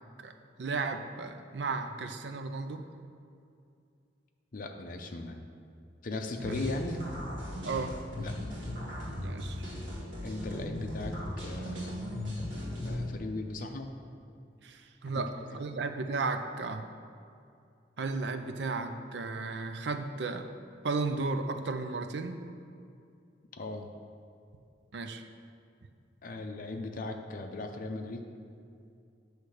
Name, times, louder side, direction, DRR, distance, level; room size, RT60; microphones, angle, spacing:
voice 1, 0.6-2.8 6.4-6.6 7.6-8.0 9.2-9.6 14.6-16.8 18.0-20.5 20.8-22.4 24.9-25.2, right 3 dB, 65° right, 7 dB, 0.5 m, -34 dB
voice 2, 4.5-5.4 6.0-7.0 8.2-8.3 10.2-12.0 12.8-13.9 15.1-15.6 23.5-23.9 26.2-28.3, left 2 dB, 50° left, 4 dB, 0.5 m, -38 dB
sound 1, 6.4-13.1, left 1 dB, 85° right, 1.9 m, -37 dB
8.2 x 3.2 x 6.3 m, 2.4 s
head